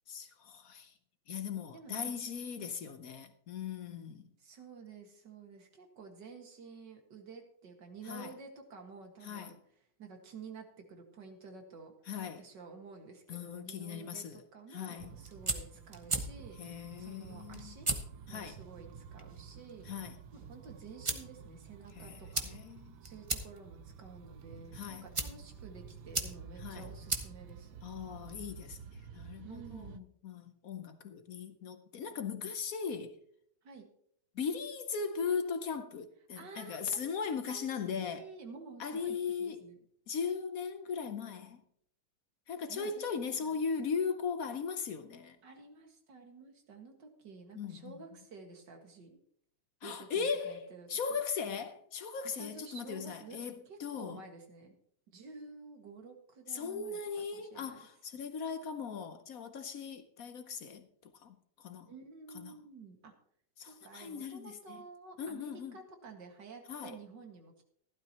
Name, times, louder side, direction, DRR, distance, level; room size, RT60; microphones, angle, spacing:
voice 1, 0.1-0.9 1.3-4.3 8.1-8.3 9.2-9.6 12.1-12.4 13.3-14.4 14.7-15.1 16.6-17.8 18.3-18.6 19.8-20.2 22.0-23.0 24.7-25.1 26.6-26.9 27.8-33.2 34.3-38.2 38.8-39.6 40.1-41.6 42.5-45.4 47.6-47.9 49.8-54.2 56.5-61.9 62.3-62.5 63.6-64.8 65.2-65.8 66.7-67.0, left 6 dB, 60° left, 0.9 m, -38 dB
voice 2, 1.7-2.2 2.6-2.7 4.4-9.6 10.0-11.9 12.4-17.9 18.3-19.9 20.3-22.5 23.0-27.8 29.4-30.0 33.6-33.9 36.4-37.0 37.5-39.8 42.7-43.5 45.4-49.2 49.8-51.2 52.2-53.4 53.7-54.8 55.1-57.9 61.9-63.1 63.6-67.6, right 4 dB, 60° right, 2.4 m, -51 dB
sound 1, 15.0-30.0, right 7 dB, 75° right, 1.4 m, -51 dB
sound 2, 15.1-28.5, right 3 dB, 35° right, 0.4 m, -41 dB
15.0 x 12.0 x 2.9 m
omnidirectional pair, 2.3 m